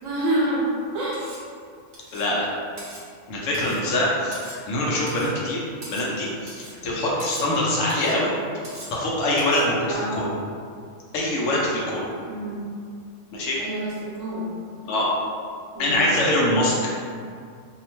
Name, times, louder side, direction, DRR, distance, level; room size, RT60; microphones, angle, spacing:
voice 1, 0.0-1.2 9.9-10.2 12.3-12.7 13.6-14.5 15.7-16.2, right 1 dB, 70° right, -6 dB, 1.1 m, -27 dB
Cutlery silverware, 1.1-1.5 1.9-2.3 2.8-3.1 3.5-3.9 4.3-4.7 5.1-5.3 5.8-6.2 6.5-6.8 7.2-7.5 7.9-8.2 8.6-9.0 9.4-9.7, right 1 dB, 50° right, 0.5 m, -42 dB
voice 2, 2.1-2.5 3.3-5.6 5.9-8.3 8.9-10.3 11.1-12.1 13.3-13.6 14.9-15.1 15.8-16.7, left 1 dB, 75° left, -5 dB, 0.9 m, -24 dB
2.8 x 2.0 x 2.9 m, 2.2 s
omnidirectional pair, 1.4 m